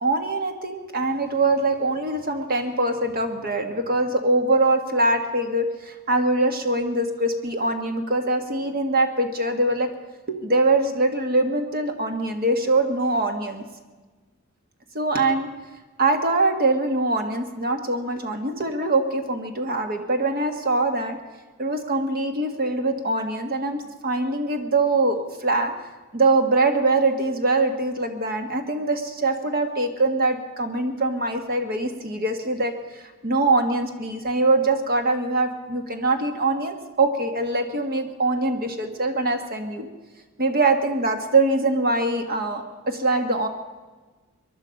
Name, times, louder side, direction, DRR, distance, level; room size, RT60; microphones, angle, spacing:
voice 1, 0.0-9.9 10.3-13.6 14.9-15.5 16.0-21.2 21.6-25.7 26.1-39.9 40.4-43.5, right 2 dB, 45° right, 6 dB, 1.5 m, -23 dB
23.5 x 11.0 x 5.2 m, 1.3 s
head